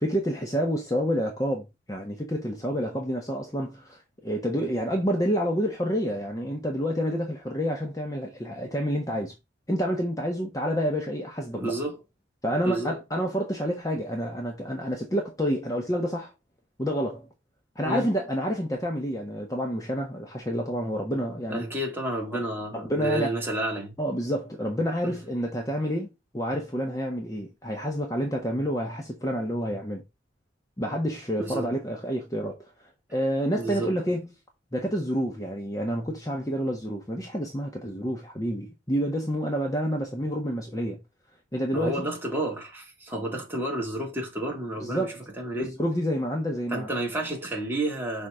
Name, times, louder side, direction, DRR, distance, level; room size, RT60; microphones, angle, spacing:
voice 1, 0.0-9.3 9.7-11.7 12.4-16.3 16.8-17.3 17.7-21.6 22.7-23.3 24.0-30.0 30.8-34.3 34.7-41.0 41.5-42.1 44.8-45.2 45.6-46.9, equal, 20° left, 1.3 m, -28 dB
voice 2, 11.5-12.0 12.6-13.0 17.8-18.1 21.5-23.9 25.0-25.2 31.4-31.7 33.6-33.9 41.7-45.8 46.7-48.3, right 1 dB, 10° right, 2.3 m, -31 dB
5.8 x 4.2 x 5.0 m
head